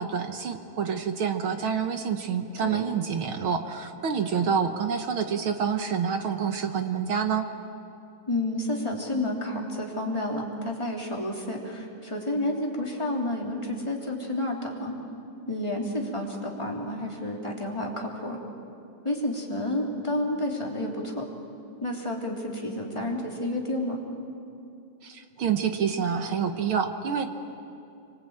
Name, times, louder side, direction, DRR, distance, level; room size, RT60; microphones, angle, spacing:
voice 1, 0.0-7.5 25.0-27.2, right 7 dB, 60° right, 7 dB, 1.5 m, -27 dB
voice 2, 8.3-14.9 15.5-18.4 19.0-21.3 21.8-24.0, left 1 dB, 10° left, -1 dB, 3.0 m, -30 dB
26.5 x 24.0 x 8.9 m, 2.6 s
omnidirectional pair, 3.6 m